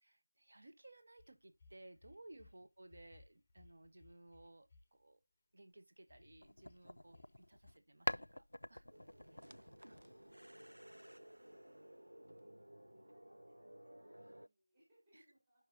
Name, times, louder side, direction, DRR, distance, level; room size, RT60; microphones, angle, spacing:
voice 1, 0.0-5.2 5.5-8.8 15.1-15.2, right 1 dB, 40° right, 0.9 m, -60 dB
sound 1, 1.2-2.6 2.8-4.8 6.1-6.8 7.1-7.3 7.6-7.8 8.1-8.2, left 3 dB, 10° left, 0.9 m, -64 dB
sound 2, 6.4-7.8 8.1-10.7, left 1 dB, 65° left, 0.4 m, -46 dB
voice 2, 8.6-10.9 11.7-15.7, equal, 10° right, 4.1 m, -74 dB
sound 3, 8.9-14.5, right 1 dB, 80° right, 0.5 m, -57 dB
15.5 x 5.5 x 2.6 m
figure-of-eight pair, 170°, 0 cm